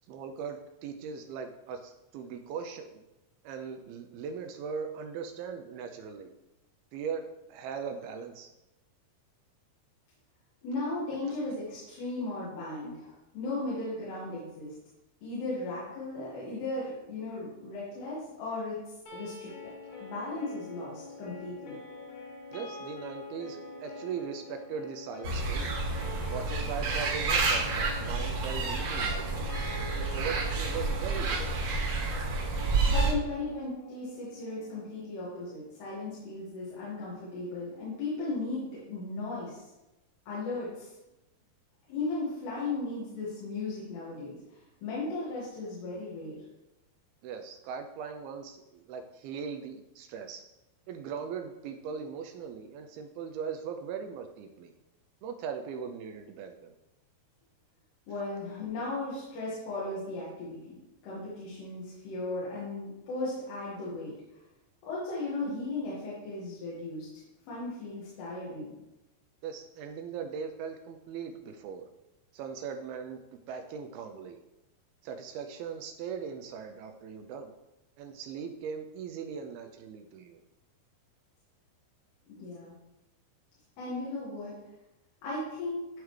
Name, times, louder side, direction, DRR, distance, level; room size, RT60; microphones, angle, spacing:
voice 1, 0.1-3.0 3.4-6.3 6.9-8.5 11.2-11.3 22.5-25.7 26.3-29.5 30.0-31.5 47.2-50.4 50.9-54.7 55.2-56.7 69.4-71.9 72.3-73.2 73.5-74.4 75.0-77.6 78.0-80.4, right 6 dB, 80° right, 5 dB, 2.3 m, -39 dB
voice 2, 10.6-14.7 15.2-18.8 19.1-19.7 20.0-21.8 32.8-39.7 40.3-40.9 41.9-46.4 58.1-64.1 64.9-67.1 67.4-68.7 82.3-82.7 83.8-84.5 85.2-85.9, left 2 dB, 90° left, -8 dB, 3.8 m, -36 dB
sound 1, 19.1-35.1, left 3 dB, 65° left, 3.0 m, -45 dB
sound 2, 25.2-33.1, right 3 dB, 60° right, 2.1 m, -29 dB
12.5 x 4.6 x 3.2 m, 0.96 s
omnidirectional pair, 4.7 m